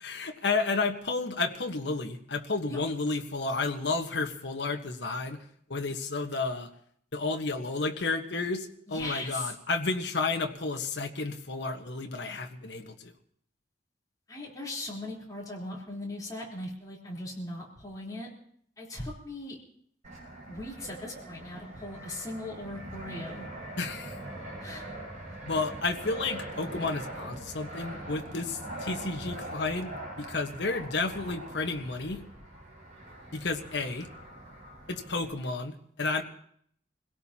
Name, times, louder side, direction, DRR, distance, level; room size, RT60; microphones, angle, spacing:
voice 1, 0.0-5.4 5.7-6.7 7.1-13.1 23.8-24.2 25.4-29.9 30.2-32.2 33.3-34.1 34.9-36.2, left 3 dB, 65° left, 4 dB, 1.3 m, -31 dB
voice 2, 8.9-9.5 14.3-18.3 18.8-19.6 20.5-23.5 24.6-24.9, left 1 dB, 20° left, -4 dB, 3.8 m, -39 dB
Fixed-wing aircraft airplane, 20.0-35.3, right 1 dB, 40° right, 6.5 m, -42 dB
26.5 x 17.0 x 2.9 m, 0.65 s
head